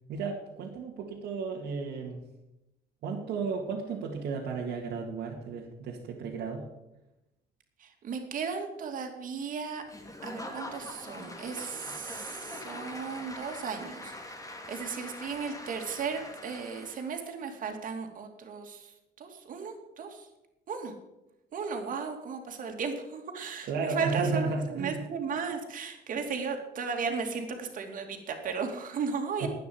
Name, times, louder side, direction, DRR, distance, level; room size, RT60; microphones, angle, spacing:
voice 1, 0.1-2.2 3.0-6.7 23.7-25.0 29.4-29.5, right 4 dB, 75° right, -2 dB, 2.2 m, -33 dB
voice 2, 7.8-9.8 10.2-20.3 20.7-20.9 21.5-29.5, right 5 dB, 55° right, 4 dB, 2.7 m, -35 dB
Applause / Crowd, 9.9-17.2, left 1 dB, 20° left, 2.5 m, -43 dB
11.5 x 9.3 x 7.9 m, 0.94 s
cardioid pair, 110°, 17 cm